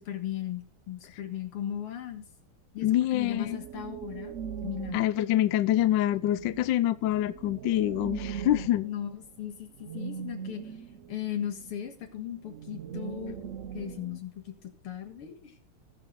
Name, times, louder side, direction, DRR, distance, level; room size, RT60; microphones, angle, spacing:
voice 1, 0.0-2.2 2.7-4.3 4.6-5.0 8.8-10.8 11.1-13.4 13.7-15.5, left 10 dB, 90° left, 2.6 m, -37 dB
voice 2, 2.8-3.6 4.9-8.9, left 13 dB, 70° left, 1.2 m, -26 dB
sound 1, 3.2-14.2, right 8 dB, 75° right, 0.7 m, -41 dB
18.5 x 6.2 x 3.8 m
omnidirectional pair, 2.4 m